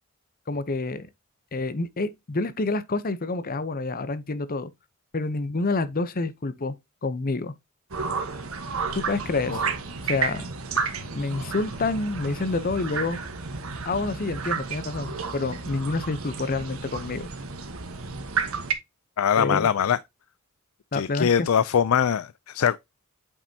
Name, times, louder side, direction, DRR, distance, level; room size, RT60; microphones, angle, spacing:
voice 1, 0.5-1.1 1.5-4.7 5.1-6.7 7.0-7.5 8.9-9.6 10.0-10.5 11.1-13.2 13.9-17.3 19.4-19.7 20.9-21.5, left 3 dB, 45° left, 0.8 m, -28 dB
sound 1, 7.9-18.7, right 5 dB, 85° right, 1.4 m, -32 dB
voice 2, 19.2-20.0 20.9-22.8, left 8 dB, 80° left, 0.4 m, -22 dB
8.5 x 5.3 x 2.8 m
head